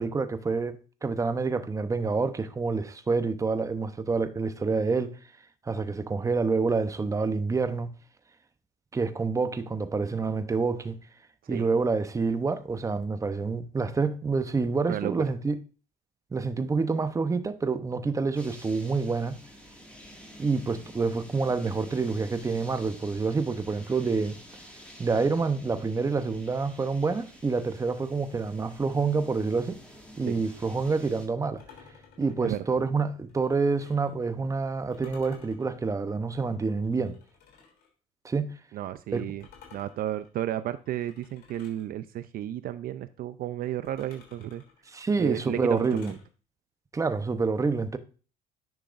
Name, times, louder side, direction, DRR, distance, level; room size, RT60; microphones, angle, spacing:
voice 1, 0.0-5.2 5.6-7.9 8.9-11.0 11.5-15.6 16.3-19.4 20.4-24.4 25.0-29.8 30.2-31.6 32.2-37.2 38.2-38.5 39.1-39.2 44.9-46.1 46.9-48.0, right 4 dB, 20° right, 0.8 m, -27 dB
sound 1, 18.3-31.3, equal, 5° left, 2.0 m, -49 dB
sound 2, 31.6-34.2 34.9-37.9 39.4-41.9 43.8-46.3, left 6 dB, 70° left, 3.1 m, -55 dB
voice 2, 38.7-44.6 45.2-46.2, right 12 dB, 60° right, 0.4 m, -33 dB
10.5 x 5.8 x 2.5 m
cardioid pair, 110°, 17 cm